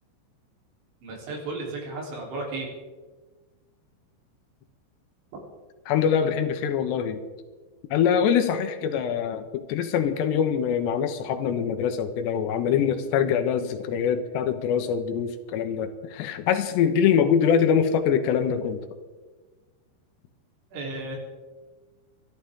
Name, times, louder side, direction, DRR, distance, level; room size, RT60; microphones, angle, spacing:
voice 1, 1.0-2.7 20.7-21.2, right 2 dB, 90° right, -1 dB, 6.2 m, -34 dB
voice 2, 5.9-7.2 7.9-18.9, left 8 dB, 75° left, 8 dB, 3.0 m, -24 dB
26.5 x 12.0 x 3.7 m, 1.3 s
omnidirectional pair, 5.2 m